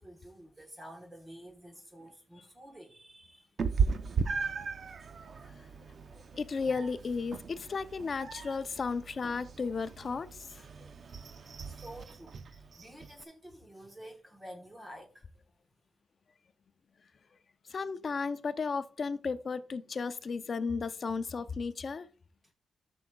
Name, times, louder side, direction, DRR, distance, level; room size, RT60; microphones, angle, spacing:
voice 1, 0.0-3.5 4.9-5.2 11.2-11.3 11.7-15.3 22.4-22.5, equal, 15° right, 1.2 m, -50 dB
Meow, 3.6-13.2, right 5 dB, 50° right, 0.6 m, -37 dB
voice 2, 6.1-10.4 17.7-22.1, left 4 dB, 45° left, 0.5 m, -34 dB
13.5 x 6.2 x 2.3 m
wide cardioid pair, 135°, 0 cm